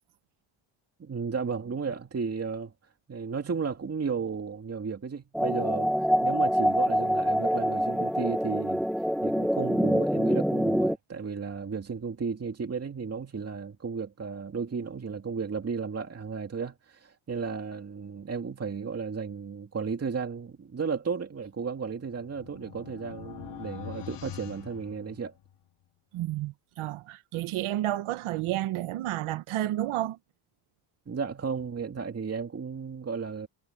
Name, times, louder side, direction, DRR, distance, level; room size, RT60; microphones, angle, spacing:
voice 1, 1.0-2.7 3.1-8.9 9.2-25.3 31.1-33.5, right 5 dB, 30° right, 2.4 m, -34 dB
sound 1, 5.3-11.0, equal, ahead, 1.1 m, -25 dB
sound 2, 21.8-25.6, left 11 dB, 60° left, 2.0 m, -44 dB
voice 2, 26.1-30.2, right 14 dB, 85° right, 1.3 m, -31 dB
cardioid pair, 115°, 49 cm